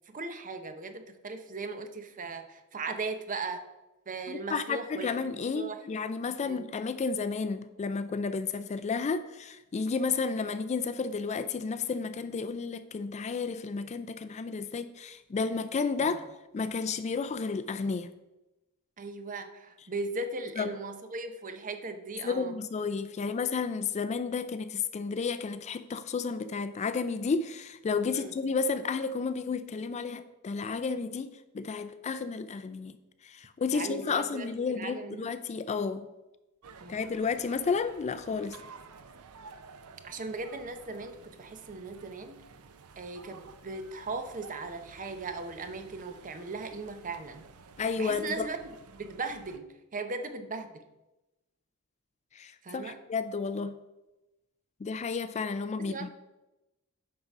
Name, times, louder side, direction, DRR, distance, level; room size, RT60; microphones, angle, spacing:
voice 1, 0.1-3.6 4.1-5.8 6.4-6.6 16.0-16.2 19.0-22.5 28.1-28.3 33.7-35.3 36.8-37.0 40.0-42.4 43.0-47.5 48.0-48.6 48.9-50.8 52.6-53.0 55.8-56.1, right 3 dB, 35° right, 8 dB, 0.7 m, -38 dB
voice 2, 4.3-16.2 16.5-18.1 20.6-20.7 22.2-32.9 33.2-36.1 36.9-38.6 47.8-48.5 52.3-53.7 54.8-56.1, left 5 dB, 30° left, 12 dB, 0.3 m, -32 dB
sound 1, 36.6-49.6, right 5 dB, 75° right, 0.6 m, -52 dB
9.3 x 3.8 x 5.9 m, 1.0 s
head